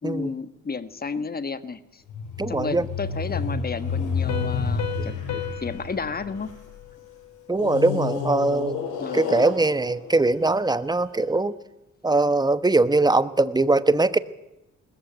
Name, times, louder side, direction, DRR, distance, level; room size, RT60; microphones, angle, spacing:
voice 1, 0.0-2.0 2.5-5.1 5.6-6.5 9.0-9.4, left 4 dB, 30° left, 13 dB, 1.5 m, -32 dB
sound 1, 2.1-6.8 7.5-10.9, left 5 dB, 85° left, 6.8 m, -30 dB
voice 2, 2.4-2.9 7.5-8.8 9.1-11.5 12.0-14.2, right 2 dB, 15° right, 14 dB, 1.1 m, -21 dB
Piano, 4.3-7.7, left 11 dB, 60° left, 2.3 m, -37 dB
20.5 x 14.5 x 8.8 m, 0.94 s
cardioid pair, 90°, 30 cm